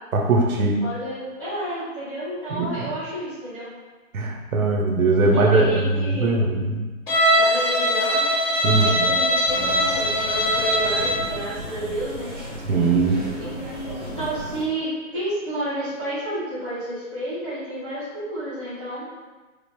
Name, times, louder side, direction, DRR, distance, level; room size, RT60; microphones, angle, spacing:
voice 1, 0.1-0.8 2.5-2.7 4.1-6.8 8.6-9.1 12.7-13.2, right 3 dB, 80° right, 1 dB, 0.8 m, -20 dB
voice 2, 0.8-3.7 5.2-6.4 7.3-8.2 8.7-12.3 13.4-19.1, right 1 dB, 5° left, -18 dB, 0.8 m, -31 dB
Bowed string instrument, 7.1-11.3, equal, 45° left, 0.9 m, -21 dB
sound 1, 9.4-14.6, equal, 20° right, 1.1 m, -35 dB
5.0 x 2.1 x 3.0 m, 1.2 s
hypercardioid pair, 170°, 42 cm